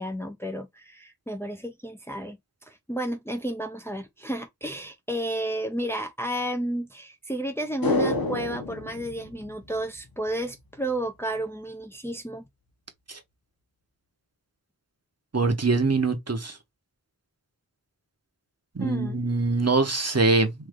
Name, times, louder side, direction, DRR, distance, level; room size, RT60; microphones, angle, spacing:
voice 1, 0.0-2.4 2.7-12.4 18.8-19.2, right 1 dB, 5° left, 0.7 m, -32 dB
sound 1, 7.8-10.3 10.6-10.7, left 2 dB, 70° left, 1.0 m, -29 dB
voice 2, 15.3-16.5 18.8-20.5, right 3 dB, 45° right, 1.1 m, -23 dB
3.2 x 2.8 x 3.6 m
wide cardioid pair, 50°, 36 cm